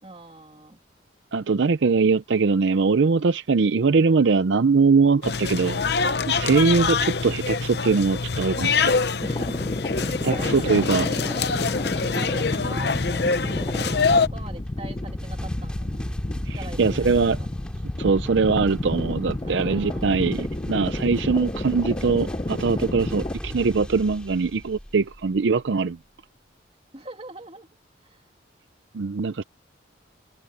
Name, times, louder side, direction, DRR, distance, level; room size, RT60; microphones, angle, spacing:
voice 1, 0.0-0.8 9.0-9.7 9.9-11.4 11.9-16.0 16.5-17.5 19.4-20.2 26.9-27.7 28.0-28.2, right 2 dB, 30° right, 2.8 m, -41 dB
voice 2, 1.3-9.0 10.0-11.1 16.5-17.4 18.0-26.0 28.9-29.4, right 4 dB, 70° right, 0.5 m, -22 dB
sound 1, 5.2-14.3, left 4 dB, 60° left, 0.8 m, -25 dB
sound 2, 9.2-23.3, left 2 dB, 25° left, 0.5 m, -31 dB
sound 3, 13.4-25.6, equal, 5° left, 3.4 m, -36 dB
head